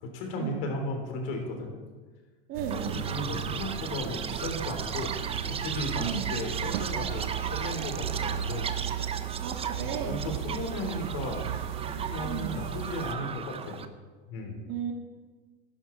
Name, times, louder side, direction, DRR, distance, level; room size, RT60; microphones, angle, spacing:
voice 1, 0.0-1.7 2.9-5.1 5.4-9.1 9.8-11.4 11.8-13.8 14.3-14.6, left 1 dB, 65° left, 3 dB, 3.4 m, -35 dB
voice 2, 2.5-3.0 6.0-6.3 9.4-10.2 12.2-12.6 14.7-14.9, right 7 dB, 45° right, 3 dB, 1.9 m, -34 dB
sound 1, 2.5-13.1, right 10 dB, 80° right, 0.8 m, -36 dB
Chirp tweet, 2.7-13.9, right 7 dB, 20° right, 0.7 m, -36 dB
12.5 x 10.5 x 4.4 m, 1.4 s
hypercardioid pair, 110°, 30 cm